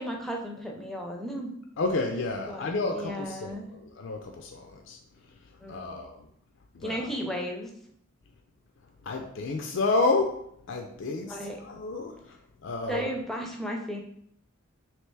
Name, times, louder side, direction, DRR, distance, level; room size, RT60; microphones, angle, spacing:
voice 1, 0.0-1.5 2.5-3.7 5.6-5.9 6.8-7.7 11.3-11.6 12.9-14.0, equal, ahead, 1 dB, 0.5 m, -34 dB
voice 2, 1.8-5.0 5.2-6.3 6.7-7.1 9.0-10.4 10.7-12.4 12.6-13.1, left 3 dB, 60° left, 3 dB, 0.4 m, -30 dB
3.3 x 2.9 x 4.5 m, 0.71 s
head